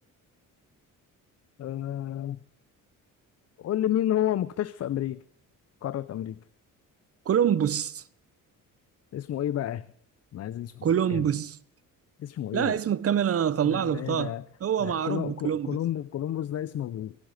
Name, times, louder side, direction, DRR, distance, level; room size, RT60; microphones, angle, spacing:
voice 1, 1.6-2.4 3.6-5.2 5.8-6.4 9.1-9.9 10.3-11.3 12.2-12.8 13.6-14.4 14.8-17.2, left 11 dB, 50° left, 0.5 m, -31 dB
voice 2, 7.3-8.0 10.8-11.6 12.5-14.3 14.6-15.8, right 9 dB, 45° right, 0.8 m, -25 dB
23.0 x 8.9 x 6.4 m
cardioid pair, 110°, 33 cm